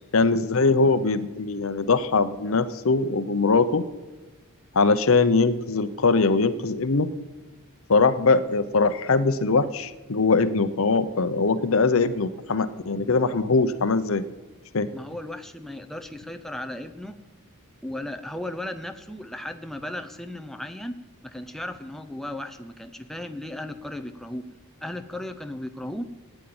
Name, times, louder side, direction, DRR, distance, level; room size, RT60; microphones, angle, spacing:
voice 1, 0.1-3.8 4.7-7.1 7.9-14.2 14.7-14.9, left 4 dB, 65° left, 12 dB, 0.8 m, -21 dB
voice 2, 14.9-17.2 17.8-24.5 24.8-26.1, left 1 dB, ahead, 6 dB, 0.7 m, -36 dB
17.0 x 9.2 x 8.7 m, 1.2 s
head